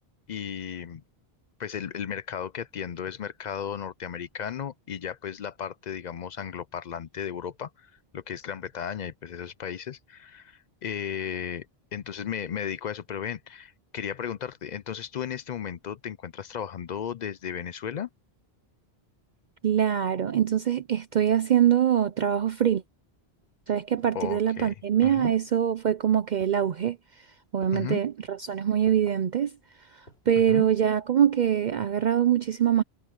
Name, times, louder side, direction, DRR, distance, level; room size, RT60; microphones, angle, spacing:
voice 1, 0.3-1.0 1.6-11.7 11.9-18.1 24.1-24.7 25.0-25.3 27.7-28.0 30.5-30.7, left 8 dB, 55° left, 0.5 m, -35 dB
voice 2, 19.6-22.8 23.7-27.3 27.5-29.6 29.9-32.8, right 9 dB, 55° right, 0.6 m, -24 dB
sound 1, 23.4-24.8 25.2-25.8 26.4-26.8 27.6-28.1 28.9-29.3 29.8-30.4 30.7-30.8, left 2 dB, 85° left, 4.2 m, -51 dB
omnidirectional pair, 1.1 m